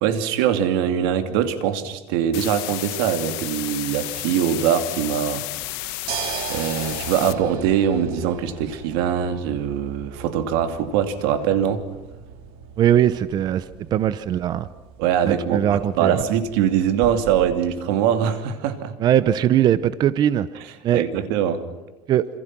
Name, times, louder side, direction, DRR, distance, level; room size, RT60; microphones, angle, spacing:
voice 1, 0.0-5.5 6.5-11.8 15.0-18.9 20.9-21.6, right 9 dB, 85° right, 8 dB, 2.7 m, -22 dB
sound 1, 2.3-7.3, left 21 dB, 85° left, 1.4 m, -32 dB
sound 2, 5.6-17.7, right 7 dB, 60° right, 3.5 m, -38 dB
voice 2, 12.8-13.6 13.9-14.7 15.2-16.2 19.0-20.5 20.8-21.0 22.1-22.2, right 11 dB, 35° right, 14 dB, 0.8 m, -20 dB
27.5 x 27.0 x 6.1 m, 1.1 s
cardioid pair, 155°, 11 cm